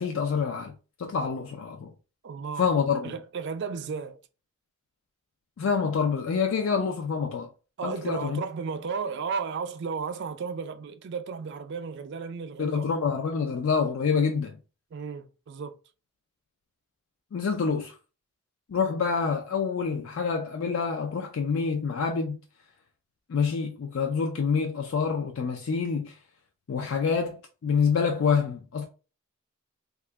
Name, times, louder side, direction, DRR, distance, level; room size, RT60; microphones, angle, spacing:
voice 1, 0.0-1.9 2.6-3.1 5.6-7.5 7.8-8.4 12.6-14.6 17.3-17.9 18.7-22.4 23.3-26.1 26.7-28.9, left 5 dB, 70° left, 0.4 m, -27 dB
voice 2, 2.2-2.7 3.0-4.2 7.8-12.9 13.3-13.4 14.9-15.7, right 5 dB, 55° right, 0.4 m, -34 dB
2.8 x 2.4 x 3.4 m
head